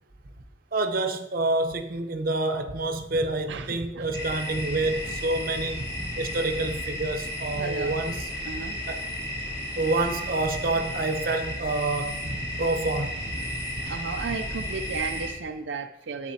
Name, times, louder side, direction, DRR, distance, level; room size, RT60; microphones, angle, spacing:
voice 1, 0.7-5.9 6.2-8.3 8.9-9.1 9.8-13.3, right 2 dB, 50° right, 0.8 m, -28 dB
voice 2, 3.5-4.2 7.6-8.0 8.5-8.8 13.9-16.3, right 4 dB, 80° right, 0.5 m, -34 dB
sound 1, 4.1-15.3, left 1 dB, 20° left, 2.1 m, -33 dB
10.5 x 8.3 x 2.8 m
head